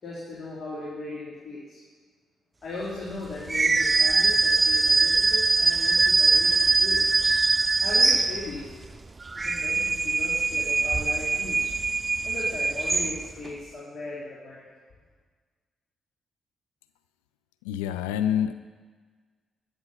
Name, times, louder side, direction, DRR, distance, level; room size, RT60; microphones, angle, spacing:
voice 1, 0.0-1.8 2.6-7.1 7.8-8.9 9.3-11.7 12.2-14.7, left 2 dB, 50° left, -7 dB, 3.4 m, -38 dB
sound 1, 3.5-8.7 9.2-13.5, right 3 dB, 30° right, 0.4 m, -22 dB
voice 2, 17.6-18.5, left 9 dB, 85° left, 11 dB, 0.3 m, -26 dB
13.0 x 7.9 x 5.7 m, 1.5 s
hypercardioid pair, 45°, 0 cm